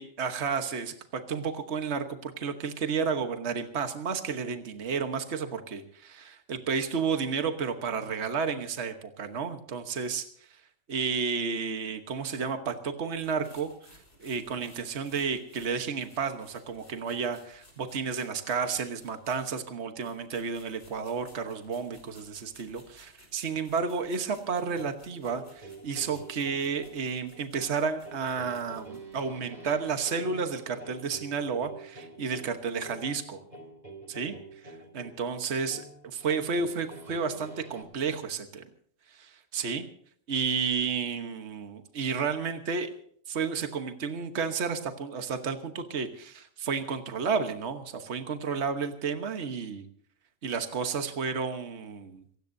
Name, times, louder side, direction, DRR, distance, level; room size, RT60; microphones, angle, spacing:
voice 1, 0.0-10.3 10.9-33.4 34.1-34.4 34.6-35.8 36.2-38.6 39.1-39.9 40.3-42.9 43.3-49.8 50.4-52.2, right 5 dB, 60° right, 7 dB, 1.5 m, -32 dB
sound 1, 13.1-19.6 20.0-29.2, left 1 dB, 50° left, 5.7 m, -58 dB
sound 2, 24.7-37.8, right 2 dB, 35° right, 2.9 m, -47 dB
27.0 x 16.5 x 2.7 m, 0.62 s
omnidirectional pair, 1.3 m